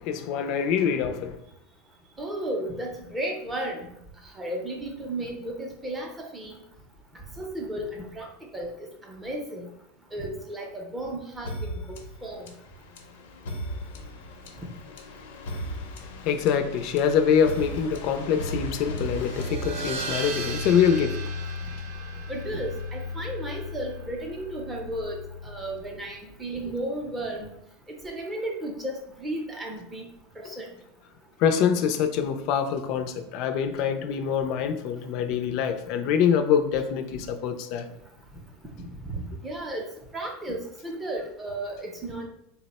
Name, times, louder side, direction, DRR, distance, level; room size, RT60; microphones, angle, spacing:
voice 1, 0.0-1.4 16.2-21.2 30.5-30.6 31.4-37.9, left 7 dB, 45° left, 0.4 m, -25 dB
voice 2, 2.2-3.9 4.3-6.6 7.4-8.7 9.0-9.7 10.1-11.7 12.2-12.4 22.3-27.5 28.0-30.1 30.4-30.7 37.1-37.2 39.1-39.9 40.1-42.3, right 1 dB, 10° right, 0.6 m, -34 dB
sound 1, 11.4-20.3, equal, 90° left, 0.7 m, -37 dB
sound 2, 19.0-26.0, left 1 dB, 70° right, 0.6 m, -35 dB
4.0 x 2.1 x 4.1 m
supercardioid pair, 165°, 0 cm